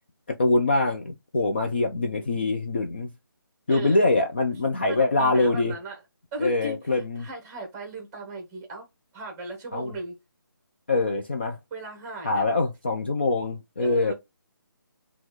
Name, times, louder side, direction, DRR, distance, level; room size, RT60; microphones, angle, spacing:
voice 1, 0.3-3.1 3.7-5.7 6.4-7.3 9.7-9.9 10.9-11.6 12.2-14.1, left 2 dB, 30° left, 0.4 m, -24 dB
voice 2, 1.7-2.4 3.7-4.0 4.9-6.0 6.3-8.9 9.1-10.2 11.7-12.5 13.8-14.1, right 2 dB, 10° right, 0.9 m, -37 dB
6.0 x 2.3 x 3.0 m
figure-of-eight pair, 170°, 12 cm